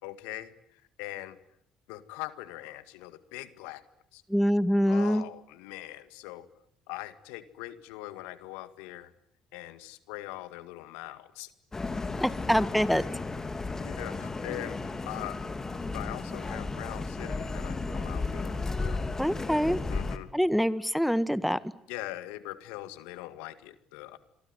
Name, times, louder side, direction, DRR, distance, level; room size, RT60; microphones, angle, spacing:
voice 1, 0.0-1.4 1.9-3.8 4.1-4.2 4.9-6.5 6.9-9.1 9.5-11.5 13.8-15.4 15.9-19.1 19.9-20.3 21.9-24.2, left 16 dB, 75° left, 14 dB, 1.9 m, -41 dB
voice 2, 4.3-5.2 12.2-13.0 19.2-19.8 20.3-21.6, equal, ahead, 16 dB, 1.6 m, -25 dB
sound 1, 11.7-20.2, left 3 dB, 25° left, 3.3 m, -34 dB
27.0 x 23.0 x 9.4 m, 0.71 s
hypercardioid pair, 60°, 2 cm